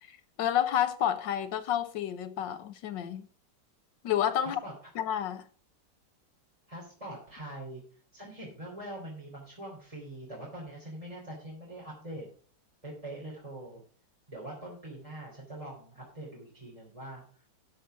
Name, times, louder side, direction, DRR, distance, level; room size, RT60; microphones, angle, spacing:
voice 1, 0.1-3.3 4.0-4.6 4.9-5.4, left 10 dB, 85° left, 1.6 m, -30 dB
voice 2, 6.7-7.8 8.1-12.3 12.8-13.8 14.3-17.2, right 1 dB, 20° right, 3.4 m, -43 dB
12.5 x 5.5 x 5.7 m
omnidirectional pair, 1.9 m